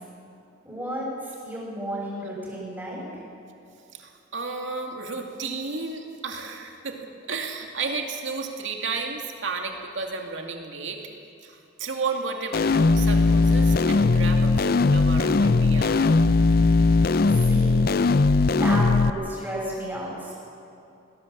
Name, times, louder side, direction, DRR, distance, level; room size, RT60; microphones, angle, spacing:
voice 1, 0.6-3.0 17.3-17.8 18.5-20.3, right 1 dB, 10° right, -7 dB, 6.1 m, -32 dB
voice 2, 3.9-7.0 7.3-11.0 11.4-16.1, right 4 dB, 75° right, 2 dB, 2.4 m, -32 dB
sound 1, 12.5-19.1, left 3 dB, 50° left, 0.5 m, -19 dB
20.5 x 17.5 x 7.6 m, 2.8 s
head